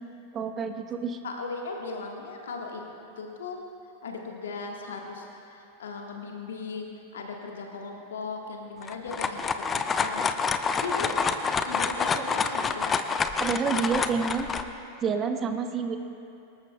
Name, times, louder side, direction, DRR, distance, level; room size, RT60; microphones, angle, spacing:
voice 1, 0.3-1.2 13.4-14.5 15.0-16.0, right 5 dB, 25° right, 7 dB, 1.0 m, -28 dB
voice 2, 1.2-2.8 3.2-3.6 4.0-10.2 10.8-11.2 11.6-12.9, left 4 dB, 65° left, 1 dB, 1.4 m, -37 dB
sound 1, 8.8-14.6, left 5 dB, 20° left, 0.6 m, -27 dB
24.5 x 13.0 x 2.2 m, 2.7 s
figure-of-eight pair, 90°, 0 cm